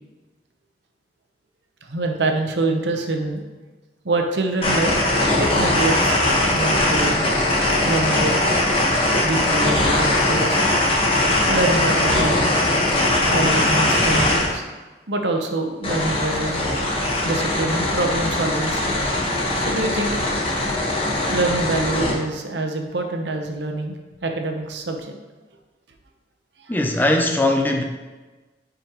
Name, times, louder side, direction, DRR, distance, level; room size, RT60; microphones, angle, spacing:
voice 1, 1.9-3.4 4.0-5.0 5.4-6.1 6.5-7.3 7.8-8.4 9.2-10.8 11.5-12.6 13.3-14.6 15.1-16.6 17.2-19.0 19.6-20.2 21.3-23.9 24.2-25.1 26.6-26.7, right 2 dB, 80° right, 4 dB, 0.9 m, -25 dB
sound 1, 4.6-14.5 15.8-22.1, left 1 dB, 30° left, 1.3 m, -20 dB
voice 2, 26.7-27.8, left 1 dB, 10° left, 3 dB, 0.5 m, -19 dB
9.6 x 5.1 x 3.0 m, 1.2 s
head